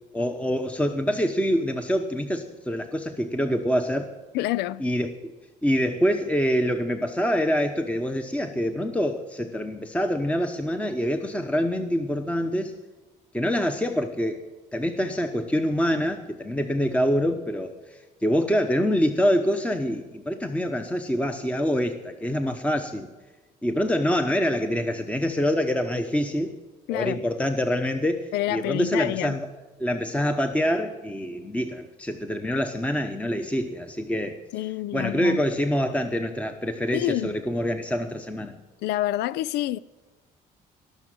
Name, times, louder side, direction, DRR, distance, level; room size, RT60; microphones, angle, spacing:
voice 1, 0.1-4.1 4.8-5.3 5.6-12.7 13.3-14.4 14.7-23.1 23.6-26.6 26.9-29.5 29.8-34.4 34.9-38.6, equal, 10° left, 1.0 m, -25 dB
voice 2, 4.3-4.8 26.9-27.2 28.3-29.4 34.5-35.4 36.9-37.3 38.8-39.8, left 15 dB, 80° left, 0.4 m, -27 dB
18.5 x 6.4 x 7.7 m
cardioid pair, 110°, 17 cm